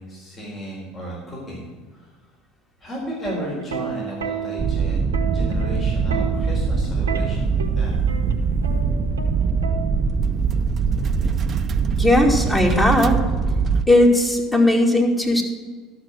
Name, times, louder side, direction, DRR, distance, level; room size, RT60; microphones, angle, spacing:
voice 1, 0.0-2.1 2.8-5.0 5.3-8.0, equal, 35° left, -3 dB, 4.3 m, -34 dB
Plucked string instrument, 3.0-10.3 11.4-11.7, right 7 dB, 85° right, 1.0 m, -32 dB
sound 1, 4.6-13.8, right 5 dB, 40° right, 0.7 m, -22 dB
voice 2, 12.0-13.2 13.9-15.4, left 1 dB, 10° left, 1 dB, 2.6 m, -17 dB
12.5 x 6.3 x 7.6 m, 1.4 s
hypercardioid pair, 70°, 0 cm